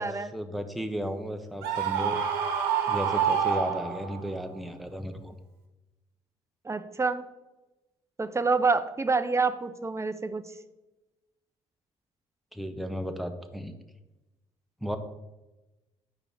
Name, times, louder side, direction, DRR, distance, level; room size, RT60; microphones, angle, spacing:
voice 1, 0.3-2.2 2.9-5.3 12.5-13.7 14.8-15.0, equal, ahead, 6 dB, 1.0 m, -34 dB
Screaming, 1.6-4.3, right 7 dB, 75° right, 1.0 m, -27 dB
voice 2, 6.6-7.2 8.2-10.4, right 4 dB, 20° right, 10 dB, 0.7 m, -27 dB
8.3 x 4.9 x 4.9 m, 1.0 s
hypercardioid pair, 50°, 16 cm